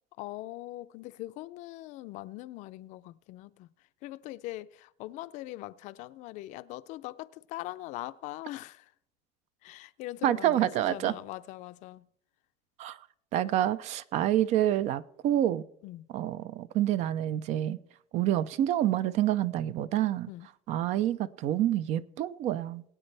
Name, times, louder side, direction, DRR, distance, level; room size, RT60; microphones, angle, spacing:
voice 1, 0.2-3.7 4.0-8.9 9.6-12.1 15.8-16.1 20.3-20.5, left 17 dB, 65° left, 0.4 m, -41 dB
voice 2, 10.2-11.1 12.8-13.0 13.3-15.6 16.1-17.8 18.1-20.3 20.7-22.8, right 12 dB, 55° right, 0.5 m, -27 dB
21.0 x 8.8 x 3.3 m
cardioid pair, 160°, 14 cm